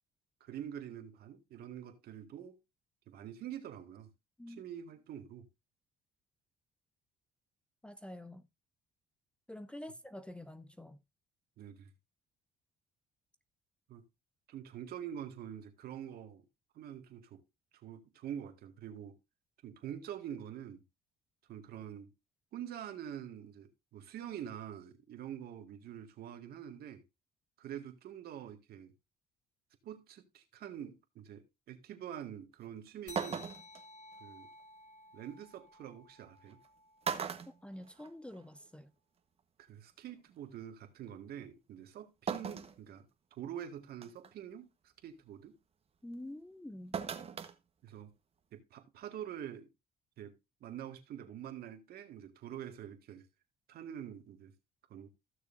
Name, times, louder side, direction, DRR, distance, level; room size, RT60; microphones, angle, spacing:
voice 1, 0.4-2.6 3.1-4.1 4.5-5.5 11.6-11.9 13.9-14.1 14.5-16.5 16.7-17.4 17.7-19.2 19.6-20.8 21.5-22.1 22.5-27.0 27.6-28.9 29.8-33.5 34.2-34.5 35.1-36.6 39.6-43.1 43.4-45.5 47.8-48.1 48.5-49.7 50.2-53.3 53.7-54.5 54.9-55.1, right 10 dB, 65° right, 1.9 m, -46 dB
voice 2, 7.8-8.5 9.5-11.0 37.6-38.9 46.0-47.0, left 1 dB, 5° left, 0.6 m, -47 dB
sound 1, 32.6-32.7 33.2-33.8 35.4-35.5 36.5-36.7 37.0-38.4 38.8-38.9 40.1-40.2 42.3-42.8 43.3-43.4 44.0-44.3 46.9-47.5 47.9-48.0, right 6 dB, 35° right, 1.2 m, -38 dB
sound 2, 33.1-38.0, left 3 dB, 45° left, 1.5 m, -55 dB
15.0 x 6.6 x 2.6 m
cardioid pair, 110°, 17 cm